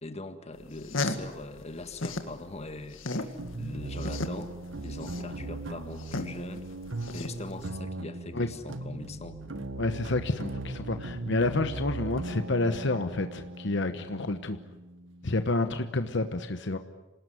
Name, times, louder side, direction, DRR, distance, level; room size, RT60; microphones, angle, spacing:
voice 1, 0.0-4.6 4.8-6.7 7.1-9.4, left 2 dB, 35° left, 8 dB, 1.8 m, -41 dB
sound 1, 0.6-2.3 2.7-7.7, left 2 dB, 85° left, 2.0 m, -35 dB
sound 2, 3.4-16.2, right 2 dB, 80° right, 1.6 m, -39 dB
voice 2, 9.8-14.6 15.2-16.8, left 2 dB, 65° left, 8 dB, 1.1 m, -29 dB
27.0 x 19.0 x 9.4 m, 1.1 s
head